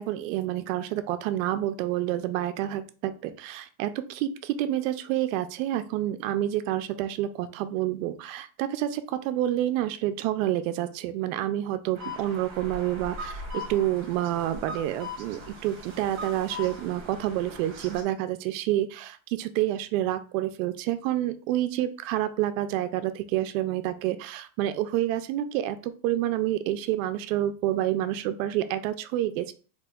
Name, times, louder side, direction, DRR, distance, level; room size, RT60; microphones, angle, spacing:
voice 1, 0.0-29.5, right 13 dB, 55° right, 10 dB, 0.5 m, -28 dB
sound 1, 11.9-18.0, left 1 dB, 35° right, 1.0 m, -40 dB
4.2 x 3.0 x 2.4 m, 0.38 s
supercardioid pair, 165°, 49 cm